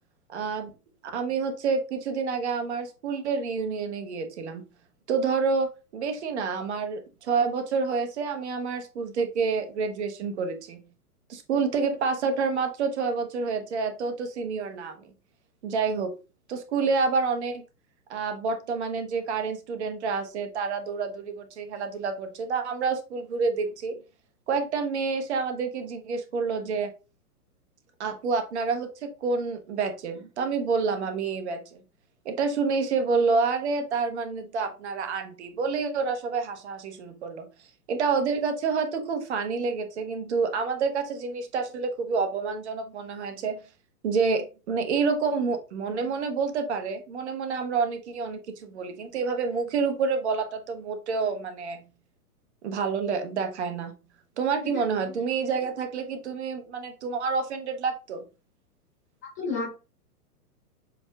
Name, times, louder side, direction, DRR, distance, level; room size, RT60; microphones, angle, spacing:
voice 1, 0.3-0.7 1.1-4.6 5.1-10.8 11.3-15.1 15.6-16.1 16.5-17.6 18.1-24.0 24.5-26.9 28.0-31.8 32.2-37.5 37.9-43.6 44.0-51.8 52.6-53.9 54.4-58.2, right 5 dB, 45° right, 7 dB, 1.0 m, -28 dB
voice 2, 54.6-55.2 59.4-59.7, left 3 dB, 10° left, -5 dB, 0.4 m, -33 dB
7.1 x 2.7 x 2.3 m, 0.32 s
figure-of-eight pair, 110°, 47 cm